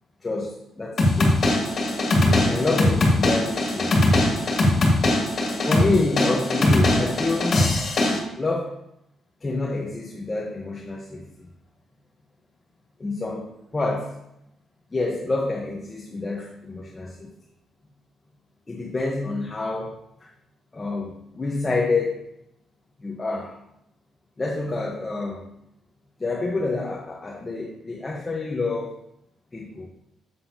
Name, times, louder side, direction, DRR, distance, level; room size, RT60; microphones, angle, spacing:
voice 1, 0.2-1.6 2.2-4.0 5.7-7.6 8.4-8.7 9.4-11.5 13.0-14.2 14.9-17.3 18.7-20.3 20.7-22.2 23.0-23.5 24.4-25.5 26.2-29.0 29.5-29.9, left 3 dB, 25° left, -2 dB, 1.2 m, -28 dB
sound 1, 1.0-8.2, left 1 dB, 45° left, 2.5 m, -21 dB
8.0 x 7.6 x 2.9 m, 0.80 s
cardioid pair, 90°, 0 cm